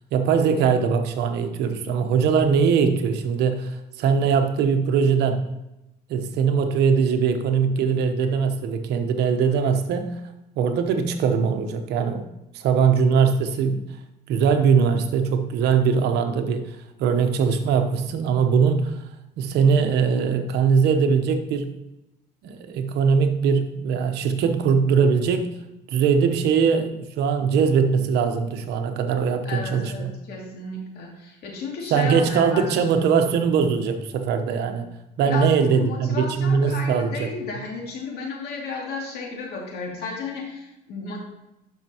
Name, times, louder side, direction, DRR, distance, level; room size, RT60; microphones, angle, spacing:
voice 1, 0.1-5.5 6.1-10.2 10.6-12.2 12.5-13.8 14.3-19.0 19.4-21.7 22.4-25.5 25.9-30.1 31.9-37.3, right 6 dB, 80° right, 7 dB, 1.0 m, -21 dB
voice 2, 29.4-33.1 35.3-41.2, left 4 dB, 70° left, -1 dB, 2.6 m, -33 dB
12.0 x 5.7 x 3.0 m, 0.91 s
cardioid pair, 110°, 17 cm